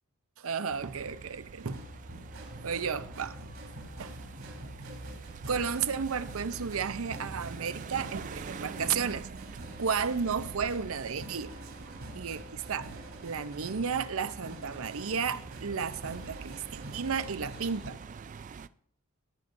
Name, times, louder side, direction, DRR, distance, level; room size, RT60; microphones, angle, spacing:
voice 1, 0.4-1.8 2.6-3.4 4.0-4.2 5.5-9.3 9.8-11.6 12.1-18.0, right 6 dB, 75° right, 0.6 m, -33 dB
sound 1, 0.7-18.7, right 5 dB, 35° right, 0.3 m, -45 dB
sound 2, 1.6-17.9, equal, 90° right, 4.2 m, -46 dB
17.5 x 9.6 x 2.7 m
head